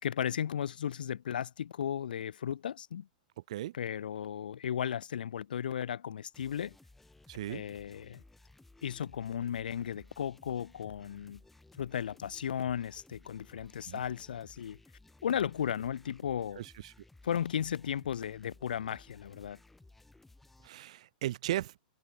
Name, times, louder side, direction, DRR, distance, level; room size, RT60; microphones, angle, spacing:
voice 1, 0.0-3.1 3.7-6.8 7.5-8.2 8.8-11.4 11.7-14.8 15.2-16.6 17.2-19.6, left 9 dB, 85° left, 4.2 m, -35 dB
sound 1, 6.3-20.7, left 2 dB, 5° left, 4.8 m, -59 dB
voice 2, 7.3-7.6 13.9-14.0 16.5-16.9 20.6-21.7, right 14 dB, 45° right, 3.2 m, -36 dB
supercardioid pair, 180°, 5 cm